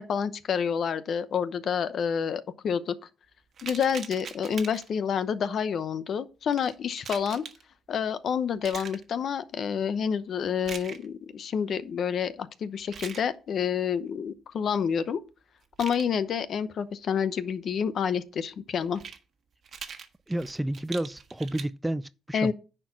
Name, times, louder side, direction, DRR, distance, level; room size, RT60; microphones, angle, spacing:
voice 1, 0.0-2.9 3.6-7.4 7.9-15.2 15.8-19.0 22.3-22.5, left 7 dB, 55° left, 0.8 m, -28 dB
sound 1, 3.6-5.0 6.5-7.6 8.6-9.0 10.6-11.1 12.8-13.2 15.6-16.1 18.8-19.2 19.6-21.7, right 6 dB, 50° right, 1.3 m, -41 dB
voice 2, 20.3-22.5, right 1 dB, 10° right, 0.3 m, -31 dB
10.0 x 4.6 x 5.7 m
cardioid pair, 115°, 0 cm